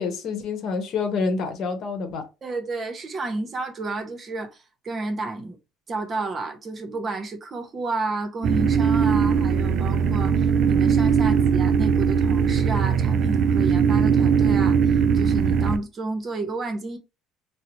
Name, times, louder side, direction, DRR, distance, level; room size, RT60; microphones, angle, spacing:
voice 1, 0.0-2.3, left 4 dB, 60° left, 0.8 m, -27 dB
voice 2, 2.4-5.6 5.9-17.0, right 3 dB, 40° right, 0.8 m, -31 dB
sound 1, 8.4-15.8, right 6 dB, 60° right, 0.3 m, -20 dB
3.8 x 2.0 x 2.9 m
supercardioid pair, 90°, 0 cm